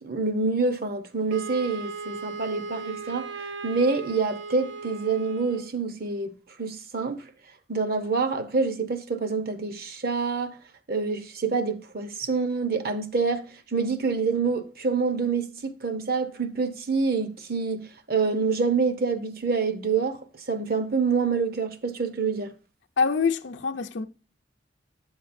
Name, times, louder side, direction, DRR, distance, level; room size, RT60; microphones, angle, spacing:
voice 1, 0.0-3.3 3.6-6.3 6.6-7.2 7.7-10.6 10.9-13.5 13.7-22.5, right 4 dB, 55° right, 0.9 m, -26 dB
Wind instrument woodwind instrument, 1.3-5.7, right 4 dB, 90° right, 0.6 m, -37 dB
voice 2, 23.0-24.1, left 5 dB, 85° left, 0.6 m, -25 dB
8.0 x 7.3 x 2.6 m
head